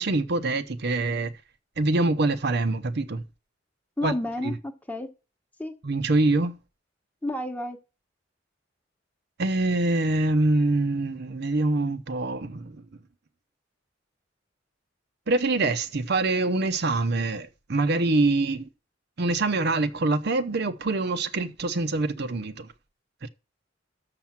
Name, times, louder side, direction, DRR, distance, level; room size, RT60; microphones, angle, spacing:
voice 1, 0.0-1.3 1.8-3.2 4.0-4.1 4.4-4.5 5.8-6.6 9.4-12.7 15.3-18.7 19.2-22.7 23.2-23.3, right 2 dB, 55° right, 0.7 m, -25 dB
voice 2, 4.0-5.1 5.6-5.7 7.2-7.8, left 1 dB, 10° left, 1.0 m, -30 dB
6.8 x 5.8 x 7.3 m
head